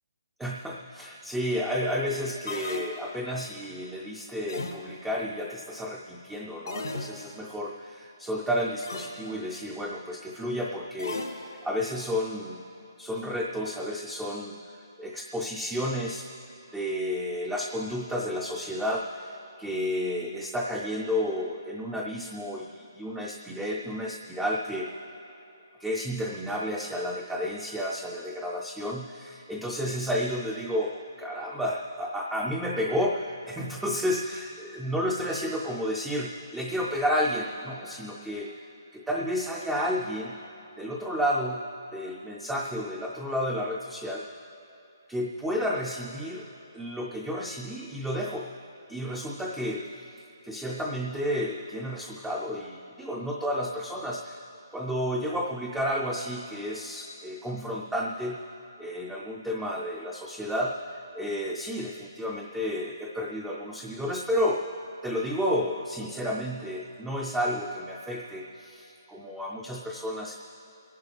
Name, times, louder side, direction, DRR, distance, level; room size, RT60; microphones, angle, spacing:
voice 1, 0.4-12.6 13.0-14.6 15.0-16.3 16.7-24.9 25.8-38.6 38.9-40.3 40.8-41.6 41.9-44.3 45.1-46.5 46.7-48.5 48.9-54.4 54.7-58.4 58.8-60.9 61.1-64.6 65.0-70.4, equal, 5° right, -2 dB, 0.3 m, -31 dB
sound 1, 2.5-3.4 4.5-5.2 6.7-7.5 8.8-9.4 11.0-11.9, left 2 dB, 85° left, 1.8 m, -37 dB
28.5 x 11.0 x 3.2 m, 2.9 s
hypercardioid pair, 175°, 2 cm